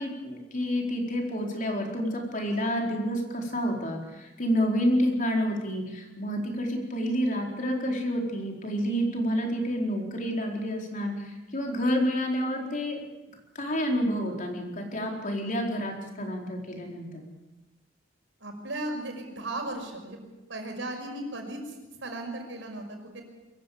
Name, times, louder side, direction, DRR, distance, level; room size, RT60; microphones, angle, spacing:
voice 1, 0.0-13.0 13.5-17.2, equal, 45° left, 1 dB, 4.4 m, -29 dB
voice 2, 18.4-20.2 20.5-21.7 22.0-23.2, right 1 dB, 80° right, 3 dB, 5.7 m, -36 dB
23.0 x 15.0 x 8.7 m, 1.1 s
head